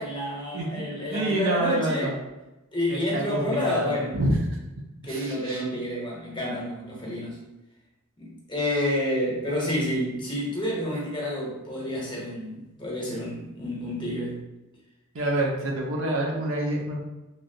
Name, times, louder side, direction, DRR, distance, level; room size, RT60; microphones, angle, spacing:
voice 1, 0.0-2.1 2.7-4.2 5.0-7.4 8.2-14.4, left 1 dB, 20° left, -4 dB, 0.8 m, -29 dB
voice 2, 0.5-0.8 1.1-2.1 2.9-4.4 5.0-5.6 15.1-17.0, right 1 dB, 60° right, -1 dB, 0.6 m, -27 dB
3.1 x 2.6 x 2.7 m, 1.0 s
head